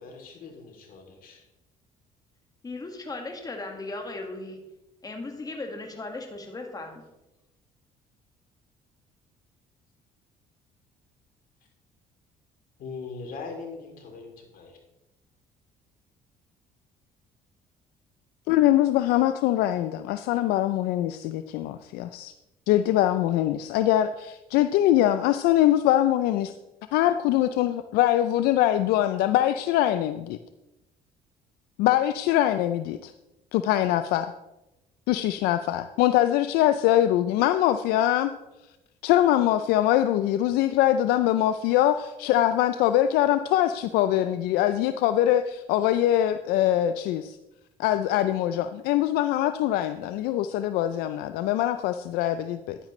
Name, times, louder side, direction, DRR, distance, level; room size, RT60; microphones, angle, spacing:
voice 1, 0.0-1.4 12.8-14.8, left 4 dB, 65° left, 1 dB, 2.9 m, -41 dB
voice 2, 2.6-4.6 5.0-7.0, left 2 dB, 25° left, 3 dB, 1.7 m, -37 dB
voice 3, 18.5-22.3 22.7-26.5 26.9-30.4 31.8-33.1 33.5-34.3 35.1-38.3 39.0-47.4 47.8-52.8, left 12 dB, 85° left, 10 dB, 0.4 m, -23 dB
10.5 x 10.0 x 3.2 m, 0.95 s
cardioid pair, 90°, 16 cm